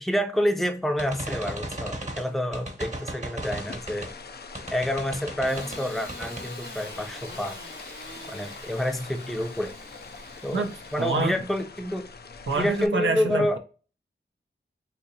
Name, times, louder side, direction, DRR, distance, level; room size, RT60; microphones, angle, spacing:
voice 1, 0.0-4.1 4.7-7.6 8.3-9.7 10.4-12.1 12.6-13.6, equal, ahead, 0.6 m, -28 dB
sound 1, 1.0-4.2 4.5-5.8 6.1-6.5, right 1 dB, 35° right, 1.0 m, -36 dB
sound 2, 3.4-12.9, left 4 dB, 55° left, 0.4 m, -44 dB
Engine starting / Sawing, 5.4-11.1, left 1 dB, 85° left, 1.6 m, -44 dB
voice 2, 11.0-11.4 12.5-13.6, right 3 dB, 75° right, 0.6 m, -26 dB
3.9 x 2.7 x 2.7 m
wide cardioid pair, 55°, 20 cm